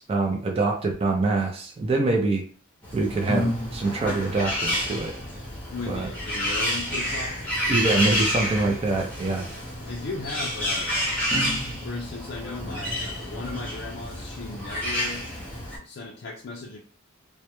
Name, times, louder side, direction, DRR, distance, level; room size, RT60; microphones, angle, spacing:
voice 1, 0.0-2.4 2.9-3.4 3.7-5.1 5.9-6.1 7.7-9.5, right 3 dB, 30° right, 1 dB, 0.3 m, -24 dB
Bird, 2.8-15.8, equal, 10° left, 0.6 m, -29 dB
voice 2, 5.7-7.4 9.8-10.9 11.8-15.2 15.8-16.8, left 3 dB, 55° left, -1 dB, 0.4 m, -36 dB
2.2 x 2.1 x 2.9 m, 0.42 s
head